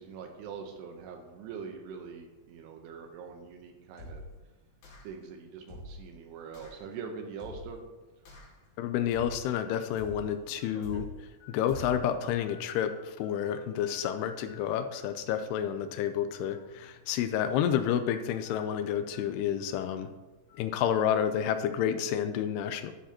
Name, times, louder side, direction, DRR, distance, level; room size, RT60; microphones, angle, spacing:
voice 1, 0.0-4.2 5.0-7.8 10.7-11.0, right 5 dB, 80° right, 4 dB, 3.0 m, -43 dB
sound 1, 4.0-4.4 4.8-5.2 5.7-6.1 6.5-6.8 7.4-7.8 8.3-8.7 9.1-9.5 10.0-10.4 10.8-11.3 11.7-12.1, left 1 dB, 65° left, 4.1 m, -45 dB
sound 2, 8.4-8.7 9.4-9.5 10.6-10.7 11.4-11.5 12.0-12.1 12.5-13.6 13.9-14.6 14.9-15.0 16.3-16.6 17.0-17.1 18.4-18.6 19.1-19.2 19.7-19.8 20.5-20.6, left 9 dB, 45° left, 2.7 m, -55 dB
voice 2, 8.8-11.1 11.5-20.1 20.5-22.9, left 9 dB, 85° left, 9 dB, 2.7 m, -30 dB
12.5 x 11.0 x 2.9 m, 1.2 s
omnidirectional pair, 4.7 m